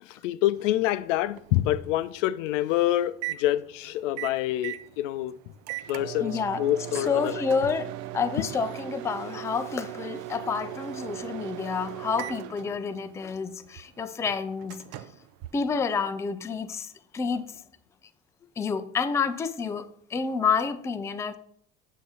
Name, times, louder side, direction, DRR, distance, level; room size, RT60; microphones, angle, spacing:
voice 1, 0.0-5.3 5.9-7.4 8.4-8.5, left 14 dB, 75° left, 0.5 m, -27 dB
Microwave oven, 0.5-16.2, right 15 dB, 55° right, 0.5 m, -39 dB
voice 2, 6.2-6.6 6.9-14.8 15.5-17.6 18.6-21.4, left 5 dB, 10° left, 0.3 m, -29 dB
6.9 x 3.7 x 5.5 m
hypercardioid pair, 85°, 37 cm